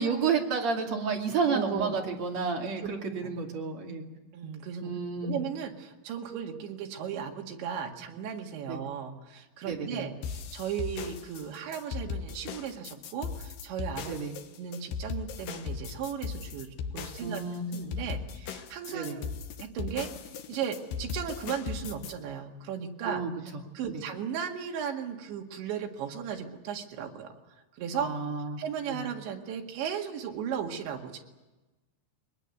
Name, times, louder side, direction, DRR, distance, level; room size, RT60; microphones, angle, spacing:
voice 1, 0.0-4.1 4.8-5.4 8.7-8.8 9.6-10.1 14.1-14.4 17.2-17.6 18.9-19.2 23.1-24.0 27.9-28.6 28.9-29.1, right 5 dB, 40° right, 1 dB, 3.3 m, -31 dB
voice 2, 1.5-2.0 2.8-2.9 4.3-4.9 5.2-14.2 14.6-16.7 16.9-17.4 17.7-19.3 19.6-20.1 20.5-23.2 23.8-27.4 27.8-28.1 28.6-31.2, right 8 dB, 75° right, 2 dB, 4.3 m, -36 dB
sound 1, 10.2-22.1, left 6 dB, 65° left, 2.4 m, -38 dB
22.0 x 20.5 x 9.4 m, 1.1 s
omnidirectional pair, 5.4 m